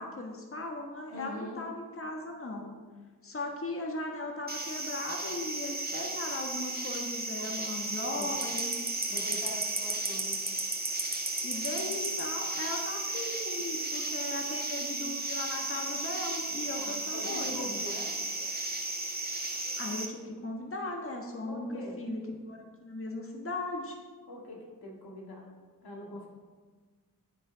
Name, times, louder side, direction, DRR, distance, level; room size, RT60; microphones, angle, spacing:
voice 1, 0.0-2.7 3.2-8.7 11.4-17.7 19.8-21.7 22.0-24.0, left 2 dB, 35° left, 1 dB, 1.4 m, -38 dB
voice 2, 1.1-1.6 7.4-7.5 8.0-8.3 9.1-10.4 16.7-18.2 21.5-22.0 24.3-25.5 25.8-26.3, left 1 dB, 80° left, -2 dB, 2.0 m, -43 dB
sound 1, 4.5-20.1, right 2 dB, 25° right, 1.5 m, -34 dB
8.8 x 6.1 x 5.1 m, 1.4 s
cardioid pair, 50°, 37 cm